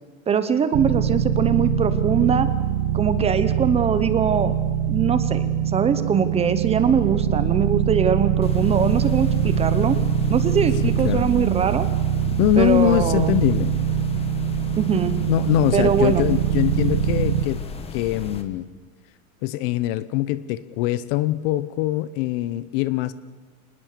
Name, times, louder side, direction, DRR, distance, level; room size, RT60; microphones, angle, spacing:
voice 1, 0.3-2.5 2.9-4.5 4.9-10.0 10.3-11.9 12.6-13.4 14.8-15.1 15.7-16.3, right 7 dB, 15° right, 12 dB, 0.9 m, -22 dB
sound 1, 0.7-17.5, right 9 dB, 45° right, 1.5 m, -23 dB
sound 2, 8.4-18.4, left 5 dB, 15° left, 1.4 m, -36 dB
voice 2, 12.4-13.7 15.3-17.6 17.9-18.7 19.4-23.1, left 14 dB, 40° left, 17 dB, 0.9 m, -22 dB
26.0 x 20.0 x 6.7 m, 1.4 s
supercardioid pair, 160°, 42 cm